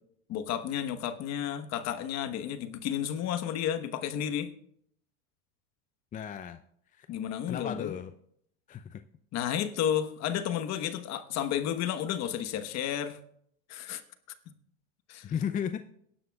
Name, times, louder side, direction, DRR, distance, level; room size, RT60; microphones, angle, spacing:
voice 1, 0.3-4.5 7.1-7.9 9.3-13.2 13.7-14.0 15.1-15.3, left 10 dB, 50° left, 10 dB, 1.2 m, -32 dB
voice 2, 6.1-6.6 6.9-7.1 7.5-8.1 8.7-9.0 15.2-15.9, left 8 dB, 25° left, 10 dB, 0.5 m, -34 dB
21.5 x 11.5 x 2.4 m, 0.70 s
supercardioid pair, 105°, 35 cm